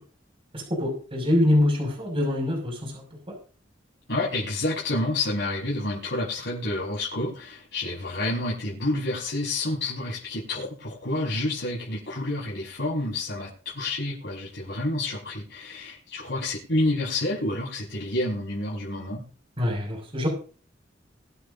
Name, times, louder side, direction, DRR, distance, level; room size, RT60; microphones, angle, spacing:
voice 1, 0.5-3.3 19.6-20.3, left 1 dB, 30° right, 1 dB, 6.2 m, -25 dB
voice 2, 4.1-19.2, left 2 dB, 65° left, -5 dB, 5.7 m, -29 dB
23.5 x 9.8 x 2.7 m, 0.40 s
head